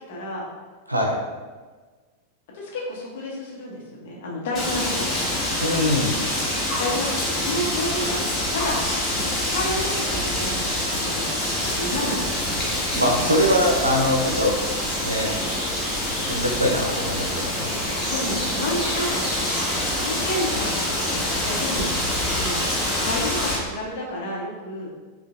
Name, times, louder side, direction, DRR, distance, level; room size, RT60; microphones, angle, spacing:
voice 1, 0.1-0.5 2.5-5.2 6.8-11.3 11.7-13.4 17.8-19.5 20.0-21.9 22.4-22.6 23.0-24.9, left 1 dB, 55° left, -3 dB, 1.0 m, -31 dB
Wind, 4.5-23.6, left 1 dB, 20° left, 1.1 m, -26 dB
voice 2, 5.6-6.1 12.9-15.3 16.3-17.7, equal, 85° right, 1 dB, 0.6 m, -23 dB
sound 1, 11.6-23.0, equal, 15° right, 1.5 m, -35 dB
5.4 x 2.4 x 2.5 m, 1.4 s
figure-of-eight pair, 90°, 0 cm